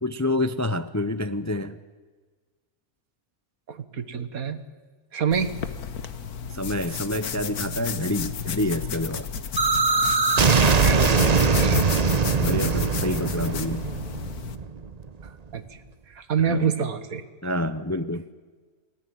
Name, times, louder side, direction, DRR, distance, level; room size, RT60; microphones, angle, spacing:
voice 1, 0.0-1.8 6.5-9.3 12.4-13.9 16.4-16.7 17.4-18.3, left 1 dB, 20° left, 12 dB, 0.5 m, -27 dB
voice 2, 3.7-4.6 5.1-5.6 10.8-11.9 15.5-15.8 16.1-17.2, right 7 dB, 70° right, 12 dB, 1.9 m, -27 dB
sound 1, 5.3-14.6, left 7 dB, 85° left, 1.7 m, -33 dB
sound 2, 9.6-15.3, right 4 dB, 30° right, 0.9 m, -22 dB
28.5 x 20.0 x 9.3 m, 1.4 s
omnidirectional pair, 1.6 m